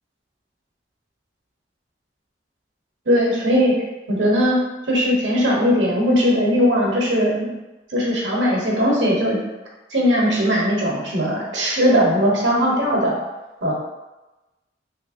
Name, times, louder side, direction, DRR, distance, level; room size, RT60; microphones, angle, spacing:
voice 1, 3.1-3.8 4.1-4.6 4.9-7.5 7.9-9.4 9.9-13.2 13.6-13.7, equal, 75° right, -3 dB, 0.9 m, -19 dB
3.4 x 3.1 x 2.5 m, 1.1 s
head